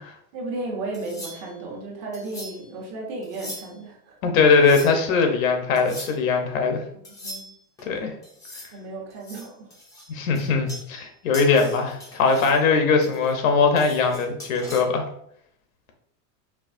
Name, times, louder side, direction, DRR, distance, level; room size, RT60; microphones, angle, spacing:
voice 1, 0.3-4.1 6.9-7.5 8.7-9.7, right 2 dB, 40° right, -1 dB, 1.1 m, -34 dB
sound 1, 0.9-1.6 2.1-2.7 3.2-3.9 4.5-5.1 5.8-6.2 7.0-7.8 8.2-8.8 9.1-11.1 11.3-12.6 13.0-14.8, left 1 dB, 10° left, 0.5 m, -41 dB
voice 2, 4.2-6.8 7.8-8.1 10.1-15.0, left 4 dB, 85° left, 5 dB, 1.0 m, -20 dB
4.7 x 2.8 x 2.6 m, 0.70 s
supercardioid pair, 170°, 40 cm